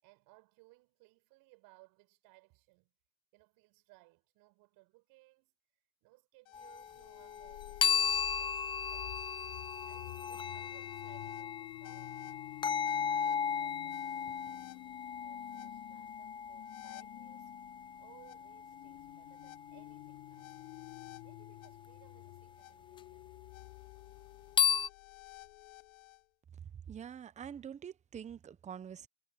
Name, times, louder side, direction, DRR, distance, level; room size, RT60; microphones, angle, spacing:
voice 1, 0.0-2.9 3.3-5.6 6.0-9.2 9.9-12.2 12.6-17.5 18.0-20.5 21.2-23.5, right 24 dB, 50° right, 6.9 m, -64 dB
sound 1, 6.5-26.2, left 23 dB, 60° left, 4.9 m, -50 dB
sound 2, 6.5-6.9 7.2-19.9 23.0-23.1 24.6-24.9, left 7 dB, 10° left, 0.5 m, -36 dB
voice 2, 26.9-29.1, right 8 dB, 15° right, 0.9 m, -45 dB
hypercardioid pair, 115°, 46 cm